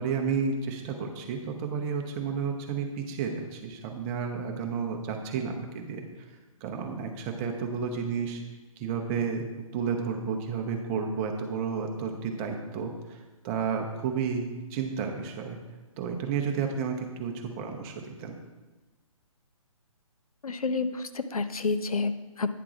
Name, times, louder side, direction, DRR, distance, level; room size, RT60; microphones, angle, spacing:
voice 1, 0.0-6.1 6.6-8.4 8.8-9.4 9.7-15.6 16.0-18.4, right 6 dB, 25° right, 3 dB, 0.9 m, -31 dB
voice 2, 20.4-22.5, left 4 dB, 85° left, 10 dB, 0.6 m, -29 dB
9.3 x 3.6 x 5.9 m, 1.2 s
figure-of-eight pair, 135°, 18 cm